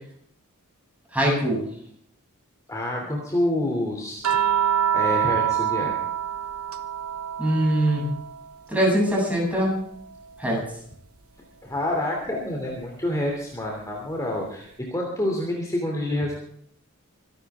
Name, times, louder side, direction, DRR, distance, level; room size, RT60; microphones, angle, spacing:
voice 1, 1.1-1.6 7.4-8.0 8.7-9.7 10.4-10.6, right 1 dB, 5° right, -2 dB, 7.8 m, -22 dB
voice 2, 2.7-4.6 4.9-5.9 11.6-16.4, left 1 dB, 15° left, -1 dB, 3.1 m, -28 dB
sound 1, 4.2-8.7 9.1-10.7 12.2-12.4, right 10 dB, 75° right, 1.1 m, -27 dB
25.0 x 12.0 x 3.7 m, 0.66 s
head